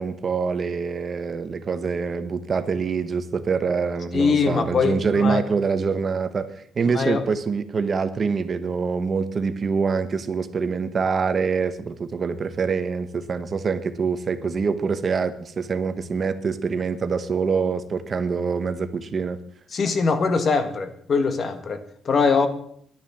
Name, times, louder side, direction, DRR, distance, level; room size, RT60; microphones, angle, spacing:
voice 1, 0.0-19.4, right 5 dB, 35° right, 11 dB, 1.1 m, -25 dB
voice 2, 4.1-5.4 6.9-7.2 19.7-22.5, left 5 dB, 40° left, 10 dB, 1.5 m, -22 dB
11.5 x 10.5 x 7.3 m, 0.66 s
cardioid pair, 120°, 0 cm